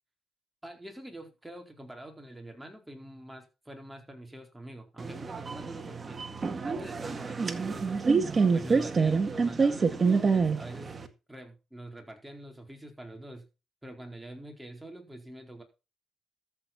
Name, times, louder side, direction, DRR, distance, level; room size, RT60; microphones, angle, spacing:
voice 1, 0.6-6.2 6.6-8.0 8.5-10.9 11.3-13.5 13.8-15.6, right 1 dB, 5° right, 3 dB, 4.4 m, -45 dB
sound 1, 5.0-11.1, right 4 dB, 35° right, 1.8 m, -27 dB
13.5 x 8.5 x 4.3 m, 0.30 s
cardioid pair, 90°, 0 cm